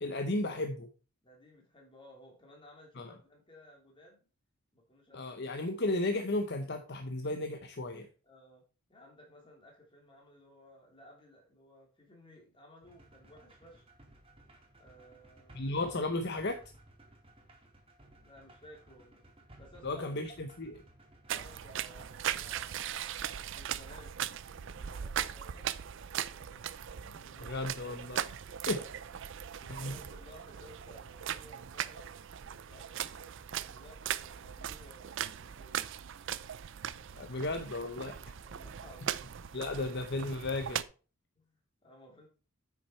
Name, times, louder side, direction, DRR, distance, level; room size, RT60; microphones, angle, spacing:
voice 1, 0.0-0.9 3.0-3.1 5.1-8.1 15.5-16.6 19.8-20.7 27.4-28.3 28.7-28.8 29.7-29.9 37.1-38.1 39.5-40.8, left 2 dB, 50° left, 6 dB, 0.8 m, -34 dB
voice 2, 1.2-4.3 4.7-5.3 8.2-8.6 8.9-13.8 14.8-15.6 18.2-19.3 19.6-20.1 21.3-24.2 24.6-27.6 28.5-28.9 29.6-32.1 32.6-36.0 38.4-39.3 41.3-42.3, equal, 20° left, 0 dB, 2.9 m, -57 dB
sound 1, 12.8-23.0, right 1 dB, 25° right, 1.9 m, -58 dB
sound 2, 21.3-40.8, right 9 dB, 55° right, 0.4 m, -39 dB
8.8 x 6.3 x 4.4 m, 0.36 s
head